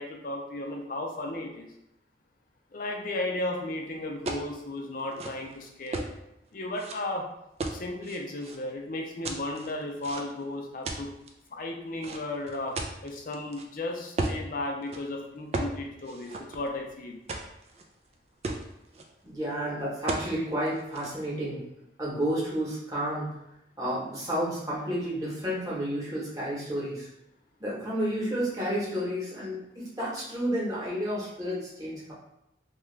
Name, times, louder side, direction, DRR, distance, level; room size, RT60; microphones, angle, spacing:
voice 1, 0.0-1.7 2.7-6.1 6.5-7.3 7.7-11.1 11.5-12.7 13.0-17.2, left 2 dB, 50° left, 1 dB, 0.5 m, -34 dB
sound 1, 4.2-4.5 5.0-6.1 6.7-6.9 7.6-8.6 9.2-10.4 10.8-11.3 12.0-13.6 14.2-14.4 14.8-15.0 15.5-15.8 16.0-16.9 17.3-17.8 18.1-18.2 18.4-19.0 20.1-20.3 20.7-21.1, right 2 dB, 35° right, 0.3 m, -34 dB
voice 2, 19.2-21.6 22.0-23.3 23.8-27.1 27.6-32.1, equal, 20° right, -7 dB, 1.1 m, -31 dB
2.9 x 2.3 x 3.2 m, 0.84 s
head